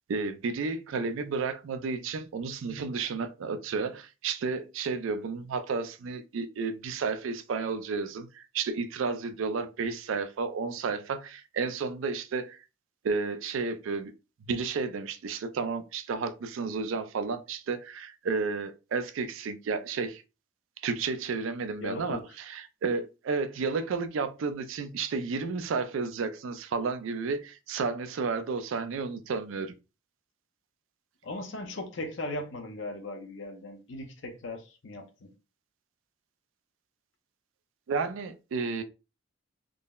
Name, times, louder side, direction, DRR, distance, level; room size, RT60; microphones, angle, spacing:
voice 1, 0.1-12.6 13.0-14.1 14.5-20.2 20.8-29.7 37.9-38.8, right 4 dB, 75° right, 0.4 m, -32 dB
voice 2, 21.8-22.2 31.2-35.3, left 2 dB, 65° left, 0.6 m, -38 dB
3.7 x 2.0 x 2.2 m
head